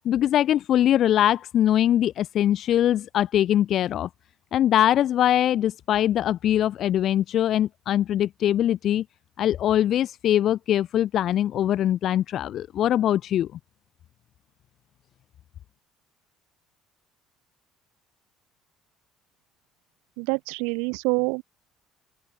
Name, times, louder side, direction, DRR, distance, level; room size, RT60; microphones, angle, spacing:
voice 1, 0.0-4.1 4.5-9.0 9.4-13.5, left 11 dB, 60° left, 6.0 m, -22 dB
voice 2, 20.2-21.4, right 35 dB, 80° right, 5.4 m, -26 dB
open air
supercardioid pair, 70°, 0 cm